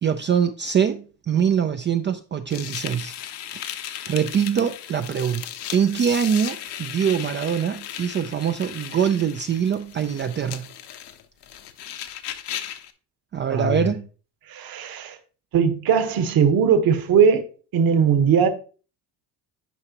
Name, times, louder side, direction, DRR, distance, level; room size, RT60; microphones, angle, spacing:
voice 1, 0.0-3.1 3.5-3.7 4.1-5.5 5.7-10.7 13.3-14.1, right 8 dB, 25° right, 0.4 m, -23 dB
sound 1, 2.5-12.9, left 10 dB, 65° left, 1.0 m, -36 dB
voice 2, 13.5-13.9 14.5-15.2 15.5-17.4 17.7-18.5, right 6 dB, 50° right, 1.3 m, -19 dB
9.9 x 4.9 x 2.9 m
supercardioid pair, 90°, 45 cm